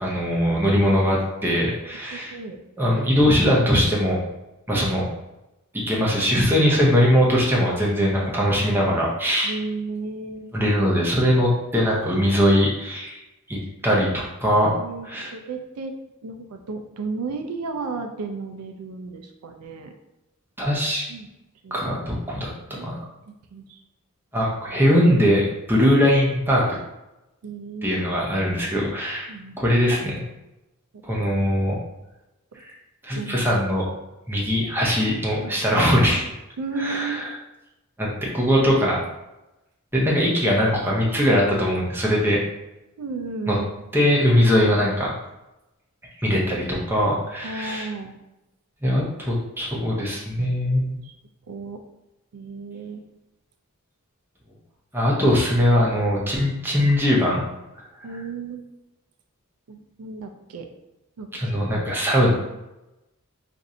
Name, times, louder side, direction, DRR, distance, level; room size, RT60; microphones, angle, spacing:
voice 1, 0.0-2.3 2.8-4.2 4.7-5.0 5.7-9.6 10.5-13.2 13.5-14.8 15.1-15.3 20.6-21.0 21.7-23.0 24.3-26.7 27.8-29.3 29.6-30.2 31.0-31.8 33.0-33.9 34.3-36.2 36.8-37.3 38.0-39.0 39.9-42.4 43.5-43.6 43.9-45.1 46.2-47.9 48.8-51.0 54.9-57.4 61.3-62.3, equal, 10° right, -4 dB, 0.7 m, -21 dB
voice 2, 2.1-2.6 4.7-5.1 9.4-10.5 14.7-15.9 16.2-19.9 21.1-21.3 21.6-21.7 22.7-22.9 23.5-23.8 27.4-28.1 29.3-29.6 30.9-31.0 33.1-33.4 35.4-35.6 36.6-37.2 43.0-43.7 47.4-48.1 51.0-51.1 51.5-51.8 52.3-53.0 58.0-58.6 59.7-60.7 61.2-61.6, right 4 dB, 80° right, 5 dB, 0.4 m, -33 dB
2.6 x 2.5 x 4.2 m, 0.95 s
head